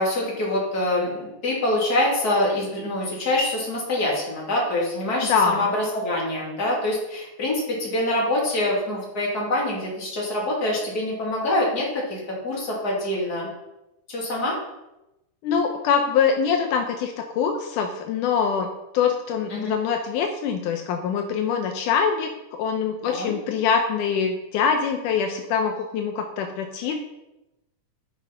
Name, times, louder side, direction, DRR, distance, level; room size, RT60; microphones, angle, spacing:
voice 1, 0.0-13.5 14.1-14.6 19.5-19.7 23.0-23.3, left 1 dB, 30° left, -4 dB, 3.2 m, -25 dB
voice 2, 5.3-5.7 15.4-22.3 22.6-27.0, left 6 dB, 80° left, 4 dB, 2.3 m, -24 dB
11.0 x 5.9 x 5.5 m, 0.94 s
omnidirectional pair, 3.6 m